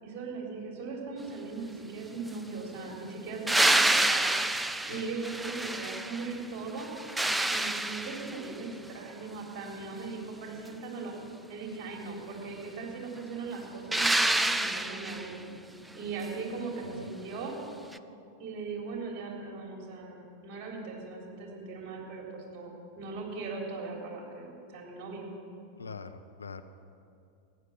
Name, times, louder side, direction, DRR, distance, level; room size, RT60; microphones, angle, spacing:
voice 1, 0.0-4.3 4.9-6.9 7.5-11.1 11.5-15.3 15.9-17.6 18.4-25.3, right 4 dB, 35° right, -1 dB, 3.7 m, -39 dB
sound 1, 3.5-6.4 6.8-8.5 13.9-15.4 17.9-18.0, right 1 dB, 5° right, 0.4 m, -28 dB
voice 2, 25.8-26.6, left 4 dB, 75° left, 9 dB, 0.6 m, -43 dB
15.0 x 9.7 x 7.5 m, 2.5 s
figure-of-eight pair, 90°, 0 cm